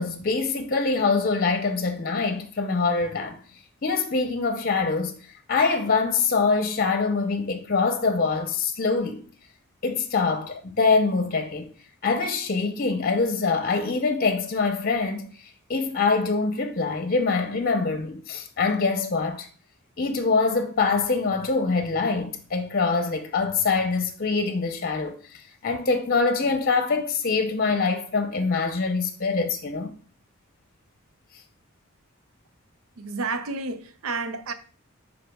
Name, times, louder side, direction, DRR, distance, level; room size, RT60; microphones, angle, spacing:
voice 1, 0.0-3.4 3.8-5.2 5.5-9.2 9.8-11.7 12.0-15.3 15.7-19.5 20.0-25.2 25.6-29.9, left 4 dB, 45° left, 0.7 m, -24 dB
voice 2, 33.0-34.5, right 3 dB, 85° right, 0.6 m, -30 dB
10.0 x 4.1 x 2.3 m
head